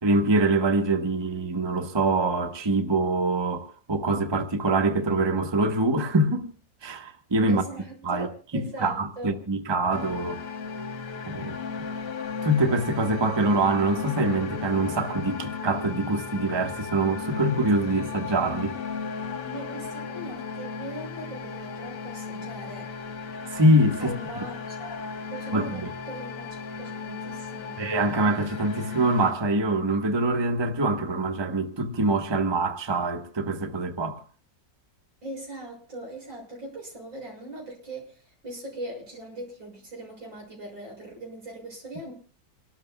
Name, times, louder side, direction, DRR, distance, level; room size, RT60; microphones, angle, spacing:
voice 1, 0.0-6.5 6.8-7.6 8.0-8.3 8.5-10.4 11.2-11.6 12.4-18.8 23.5-24.1 25.5-25.8 27.8-34.2, right 2 dB, 15° right, 1.1 m, -24 dB
voice 2, 7.5-9.4 19.4-22.9 24.0-27.8 35.2-42.1, right 1 dB, 85° right, 7.5 m, -40 dB
sound 1, 9.9-29.3, left 5 dB, 65° left, 1.6 m, -35 dB
29.0 x 13.0 x 2.3 m
omnidirectional pair, 2.0 m